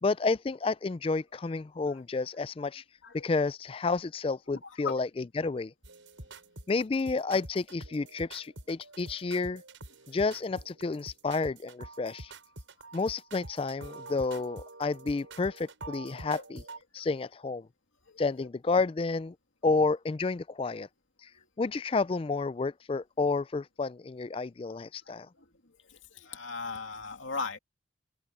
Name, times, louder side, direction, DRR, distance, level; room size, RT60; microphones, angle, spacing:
voice 1, 0.0-2.8 3.2-5.7 6.7-9.6 10.1-12.3 12.9-16.6 16.9-17.7 18.2-19.3 19.6-20.9 21.2-21.3 21.6-25.3, left 3 dB, 30° left, 0.3 m, -30 dB
sound 1, 5.8-16.8, right 2 dB, 85° right, 7.6 m, -46 dB
voice 2, 25.9-27.6, left 4 dB, 90° left, 2.8 m, -37 dB
open air
head